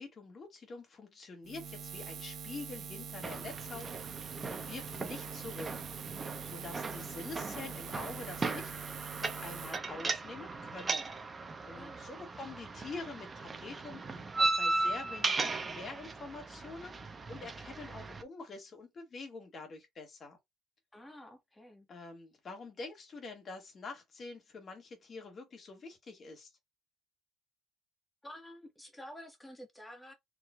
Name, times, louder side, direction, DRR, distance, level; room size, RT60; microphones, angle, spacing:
voice 1, 0.0-5.7 6.4-8.7 9.1-11.2 11.7-17.0 17.3-20.4 21.9-26.5, left 3 dB, 35° left, 1.7 m, -46 dB
Buzz, 1.4-9.8, right 7 dB, 55° right, 0.9 m, -44 dB
sound 1, 3.2-18.2, right 3 dB, 25° right, 0.8 m, -37 dB
voice 2, 11.7-12.0 20.9-21.9 28.2-30.1, left 1 dB, 10° left, 1.3 m, -50 dB
4.7 x 3.1 x 2.3 m
cardioid pair, 130°, 0 cm